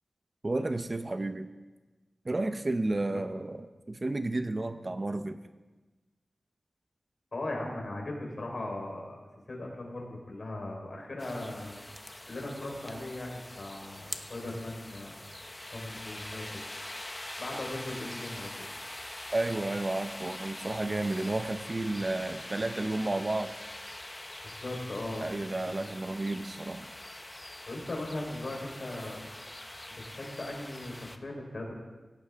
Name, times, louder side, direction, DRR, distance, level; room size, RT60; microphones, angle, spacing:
voice 1, 0.4-1.5 2.2-5.4 19.3-23.5 25.2-26.9, right 2 dB, 40° right, 9 dB, 0.8 m, -32 dB
voice 2, 3.0-3.4 7.3-9.2 9.5-15.2 15.7-16.6 17.4-18.7 24.4-25.3 25.6-26.2 27.7-29.2 29.9-31.8, left 1 dB, 60° left, 0 dB, 4.2 m, -39 dB
sound 1, 11.2-31.2, left 1 dB, 20° left, 0.9 m, -44 dB
17.5 x 16.5 x 3.6 m, 1.2 s
wide cardioid pair, 85°, 0 cm